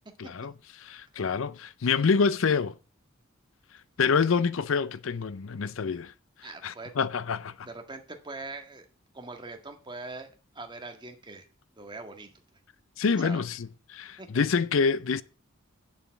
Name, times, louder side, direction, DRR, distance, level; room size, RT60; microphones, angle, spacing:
voice 1, 0.2-0.5 0.8-2.7 4.0-6.1 6.6-7.7 13.0-15.2, left 5 dB, 70° left, 0.5 m, -27 dB
voice 2, 6.4-6.9 7.6-8.9 9.1-10.3 10.6-11.5 11.8-12.3 13.0-13.4 14.2-14.4, right 3 dB, 20° right, 1.8 m, -42 dB
9.1 x 7.0 x 7.2 m
head